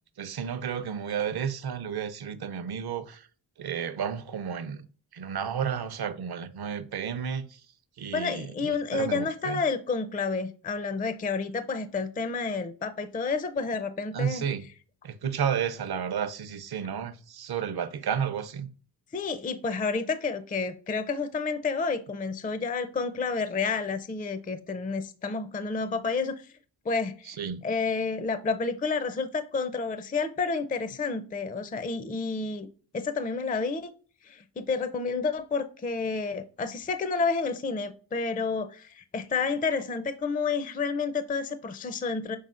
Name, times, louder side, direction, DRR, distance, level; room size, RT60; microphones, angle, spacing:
voice 1, 0.2-3.3 3.6-4.9 5.1-7.6 8.0-9.6 14.1-14.7 15.0-18.7 27.2-27.6, right 7 dB, 55° right, 0.6 m, -32 dB
voice 2, 8.1-14.4 19.1-26.5 26.9-27.4 27.6-32.7 32.9-33.9 34.2-42.4, left 4 dB, 20° left, 0.4 m, -30 dB
5.5 x 3.6 x 2.4 m
cardioid pair, 65°, 47 cm